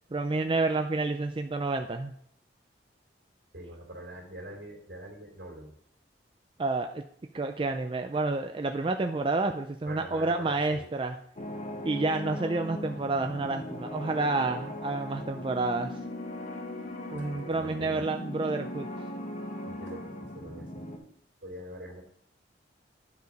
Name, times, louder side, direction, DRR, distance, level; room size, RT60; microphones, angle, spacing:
voice 1, 0.1-2.1 6.6-7.0 7.3-11.2 11.8-16.0 17.1-18.9, right 3 dB, 25° right, 6 dB, 0.4 m, -29 dB
voice 2, 3.5-5.7 9.9-10.8 17.1-18.1 19.6-20.8 21.4-22.0, right 1 dB, 75° right, -1 dB, 2.9 m, -43 dB
sound 1, 11.4-21.0, left 1 dB, 40° left, 0.9 m, -39 dB
9.4 x 4.9 x 5.1 m, 0.67 s
head